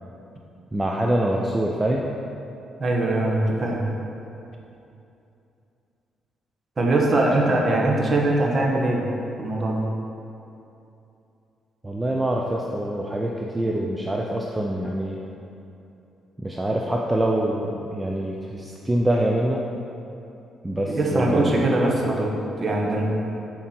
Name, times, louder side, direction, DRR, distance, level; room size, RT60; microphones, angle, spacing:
voice 1, 0.7-2.1 7.5-7.6 11.8-15.3 16.4-19.7 20.6-21.7, right 1 dB, 15° right, -1 dB, 0.6 m, -25 dB
voice 2, 2.8-3.9 6.8-9.0 9.4-9.9 20.9-22.3 22.6-23.1, right 2 dB, 35° right, -1 dB, 1.4 m, -22 dB
7.3 x 4.7 x 5.8 m, 2.8 s
cardioid pair, 90°, 0 cm